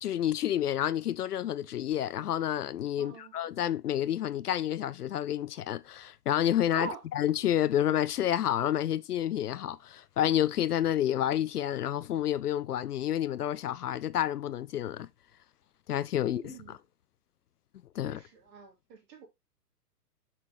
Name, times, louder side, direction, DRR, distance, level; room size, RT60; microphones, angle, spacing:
voice 1, 0.0-6.9 7.2-15.1 15.9-16.5 17.9-18.2, left 11 dB, 70° left, 0.6 m, -29 dB
voice 2, 3.0-3.3 6.7-7.0 16.2-16.8 18.0-19.3, right 5 dB, 30° right, 3.1 m, -44 dB
7.3 x 6.0 x 3.0 m
hypercardioid pair, 135°, 49 cm